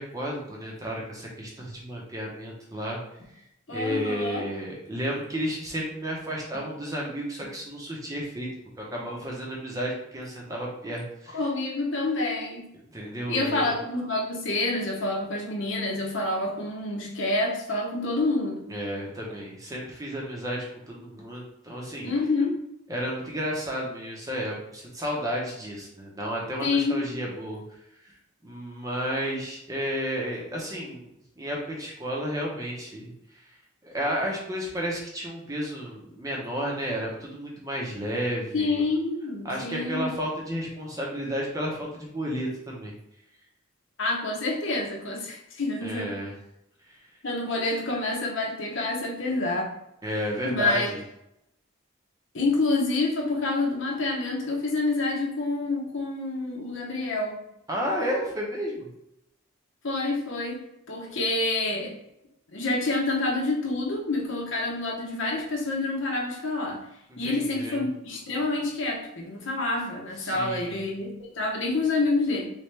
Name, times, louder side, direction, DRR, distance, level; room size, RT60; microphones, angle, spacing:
voice 1, 0.0-3.0 3.7-8.5 8.8-11.4 12.9-13.7 18.7-22.1 22.9-27.6 28.4-31.1 31.4-33.1 33.8-38.8 39.4-42.9 45.8-46.3 46.9-47.0 50.0-51.0 57.7-58.9 67.1-67.8 70.2-70.8, equal, 15° right, -3 dB, 0.7 m, -32 dB
voice 2, 3.7-4.5 11.3-12.7 13.3-18.7 22.0-22.6 26.6-27.0 38.5-40.1 44.0-46.1 47.2-49.7 50.4-50.9 52.3-57.4 59.8-60.6 60.9-62.0 62.5-66.8 67.2-72.5, left 2 dB, 70° left, 0 dB, 0.9 m, -27 dB
3.3 x 3.2 x 3.3 m, 0.83 s
head